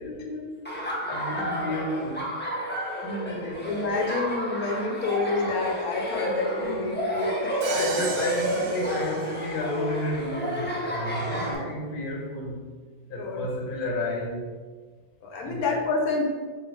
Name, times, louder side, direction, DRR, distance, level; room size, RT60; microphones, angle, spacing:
voice 1, 0.0-2.4 3.2-3.8 6.6-6.9 7.2-7.3 7.6-12.7 13.1-14.5 15.4-15.6, left 1 dB, 45° left, -1 dB, 1.0 m, -32 dB
Laughter, 0.6-11.5, equal, 10° left, 0.5 m, -31 dB
voice 2, 3.0-8.1 11.3-11.7 13.2-13.5 15.2-16.2, left 3 dB, 80° left, 1 dB, 1.2 m, -29 dB
Crash cymbal, 7.6-9.8, right 5 dB, 85° right, 1.1 m, -35 dB
4.4 x 2.4 x 4.8 m, 1.4 s
omnidirectional pair, 1.5 m